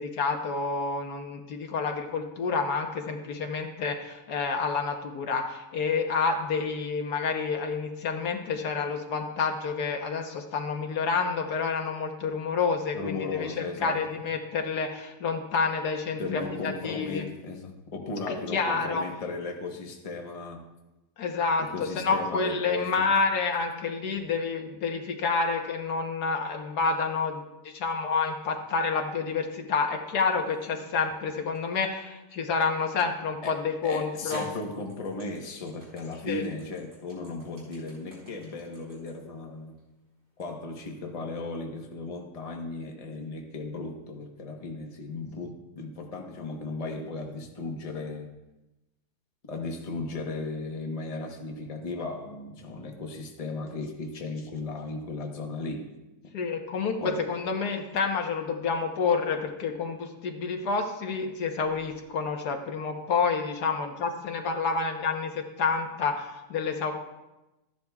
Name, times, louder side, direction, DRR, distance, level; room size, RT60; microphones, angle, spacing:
voice 1, 0.0-17.2 18.3-19.0 21.2-34.4 36.2-36.4 56.3-66.9, left 4 dB, 75° left, 4 dB, 1.5 m, -29 dB
voice 2, 12.9-14.1 16.2-20.6 21.6-23.1 33.4-39.8 40.4-48.3 49.4-55.9 57.0-57.3, left 3 dB, 25° left, 1 dB, 1.0 m, -36 dB
sound 1, 30.2-30.8 31.5-31.7 33.5-33.6 34.3-40.5, right 1 dB, 75° right, 4.4 m, -51 dB
14.0 x 10.5 x 2.3 m, 1.0 s
omnidirectional pair, 1.7 m